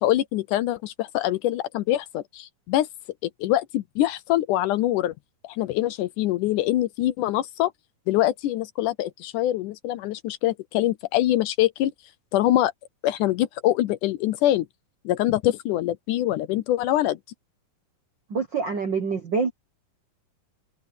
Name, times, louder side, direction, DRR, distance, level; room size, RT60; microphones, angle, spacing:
voice 1, 0.0-2.9 3.2-5.1 5.4-7.7 8.1-11.9 12.3-12.7 13.0-14.7 15.1-17.2, left 14 dB, 75° left, 2.0 m, -24 dB
voice 2, 18.3-19.5, right 5 dB, 60° right, 1.2 m, -26 dB
omnidirectional pair, 3.9 m